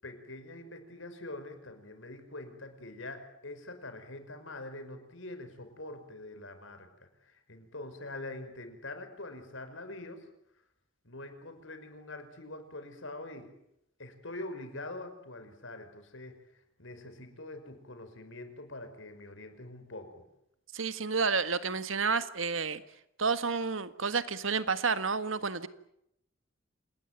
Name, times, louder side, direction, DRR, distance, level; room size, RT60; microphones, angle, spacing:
voice 1, 0.0-10.3 11.0-13.5 14.0-20.2, left 2 dB, 80° left, 8 dB, 5.4 m, -44 dB
voice 2, 20.7-22.8 23.2-25.7, right 5 dB, 90° right, 12 dB, 1.7 m, -30 dB
28.0 x 20.0 x 9.2 m, 0.77 s
head